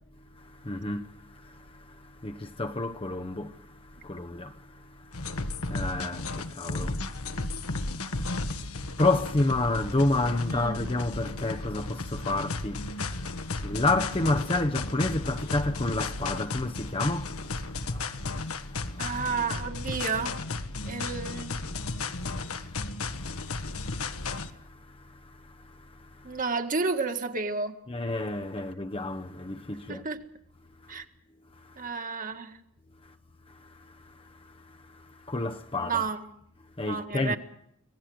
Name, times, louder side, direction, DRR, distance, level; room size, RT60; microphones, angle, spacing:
voice 1, 0.3-8.7 9.0-19.1 22.1-22.8 23.1-26.4 27.9-30.0 30.8-31.0 31.6-31.9 33.0-33.1 33.5-36.0 36.8-37.4, left 2 dB, 25° left, 0.9 m, -31 dB
sound 1, 5.1-24.5, left 3 dB, 70° left, 1.5 m, -34 dB
voice 2, 10.5-10.9 19.0-20.4 20.9-21.6 26.2-27.8 29.9-30.2 30.9-31.1 31.8-32.6 35.8-36.3 36.8-37.4, right 4 dB, 35° right, 1.9 m, -31 dB
25.5 x 18.5 x 7.9 m
head